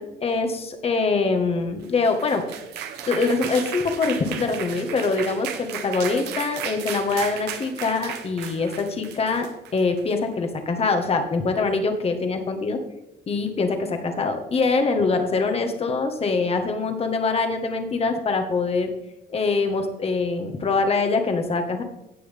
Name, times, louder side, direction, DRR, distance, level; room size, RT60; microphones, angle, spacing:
voice 1, 0.0-2.4 3.1-9.5 9.7-12.8 13.3-18.9 19.3-21.8, left 4 dB, 35° left, 5 dB, 1.6 m, -24 dB
sound 1, 1.8-10.1, right 9 dB, 80° right, 1.2 m, -35 dB
17.0 x 6.2 x 3.6 m, 0.91 s
cardioid pair, 110°, 17 cm